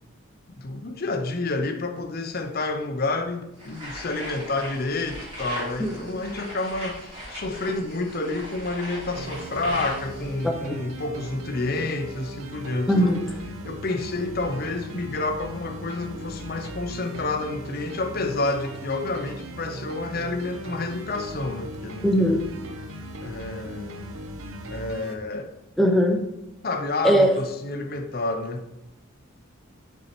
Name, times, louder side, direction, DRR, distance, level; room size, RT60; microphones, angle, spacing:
voice 1, 0.6-13.1 13.6-22.1 23.2-24.1 24.7-25.6 26.6-28.7, left 2 dB, 45° left, 0.6 m, -29 dB
sound 1, 3.6-10.3, equal, 25° right, 2.4 m, -38 dB
sound 2, 9.1-25.1, right 1 dB, 75° right, 0.8 m, -38 dB
voice 2, 12.9-13.2 22.0-22.4 25.8-26.2 27.0-27.4, equal, ahead, 0.6 m, -19 dB
8.0 x 4.3 x 4.2 m
head